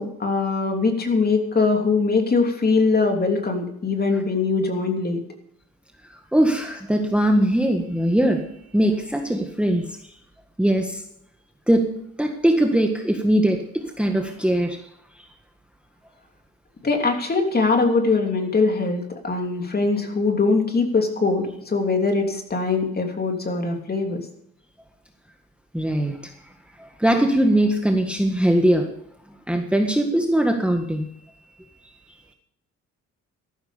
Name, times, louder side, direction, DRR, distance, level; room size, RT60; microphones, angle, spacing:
voice 1, 0.0-5.2 16.8-24.2, left 4 dB, 30° left, 4 dB, 3.2 m, -22 dB
voice 2, 6.3-10.0 10.6-11.0 11.7-14.8 25.7-26.2 26.8-28.9 29.5-31.1, right 1 dB, 5° right, 4 dB, 1.6 m, -21 dB
14.0 x 12.5 x 5.1 m, 0.73 s
cardioid pair, 90°, 30 cm